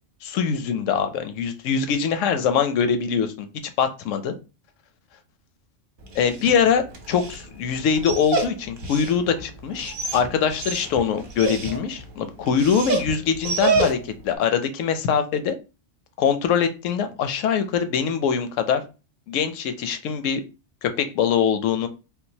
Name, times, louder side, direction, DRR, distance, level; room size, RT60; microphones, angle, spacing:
voice 1, 0.2-3.5 3.8-4.3 6.1-14.0 14.2-15.6 16.2-18.8 19.3-20.4 20.8-21.9, left 7 dB, 80° left, 9 dB, 0.9 m, -23 dB
Dog, 6.0-14.3, right 3 dB, 50° right, 0.8 m, -29 dB
3.7 x 2.4 x 2.7 m, 0.30 s
omnidirectional pair, 1.3 m